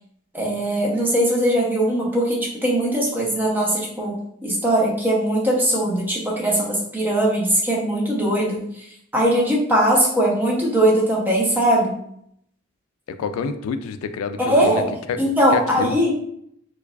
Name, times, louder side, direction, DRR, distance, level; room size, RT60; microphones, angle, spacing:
voice 1, 0.3-8.6 9.1-11.9 14.4-14.9 15.2-16.1, right 1 dB, 10° right, -3 dB, 0.7 m, -20 dB
voice 2, 13.1-14.8 15.1-15.2 15.5-16.0, left 5 dB, 90° left, 11 dB, 0.3 m, -27 dB
4.5 x 2.3 x 2.3 m, 0.70 s
head